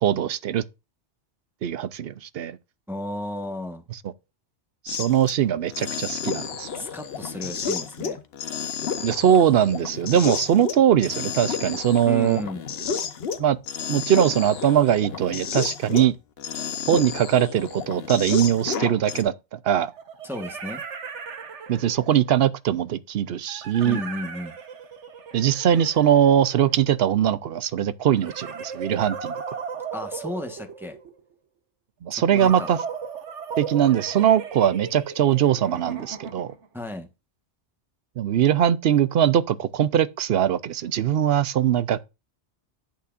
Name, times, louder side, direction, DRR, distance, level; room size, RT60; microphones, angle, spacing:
voice 1, 0.0-0.6 1.6-2.6 4.8-6.7 9.0-12.4 13.4-13.6 13.9-16.1 16.9-19.9 21.7-24.0 25.3-29.3 32.0-32.8 33.6-36.5 38.2-42.1, right 10 dB, 65° right, 0.8 m, -21 dB
voice 2, 2.9-3.8 6.7-8.2 12.0-12.6 20.2-20.8 23.8-24.6 29.9-31.0 32.1-32.7 36.7-37.1, left 1 dB, ahead, 1.1 m, -33 dB
sound 1, 4.9-5.3 5.7-16.1 16.4-19.2, left 6 dB, 60° left, 1.1 m, -31 dB
sound 2, 18.4-18.5 19.9-22.2 23.5-27.0 28.2-31.2 32.4-36.7, right 6 dB, 90° right, 1.4 m, -36 dB
10.0 x 8.4 x 2.5 m
omnidirectional pair, 1.2 m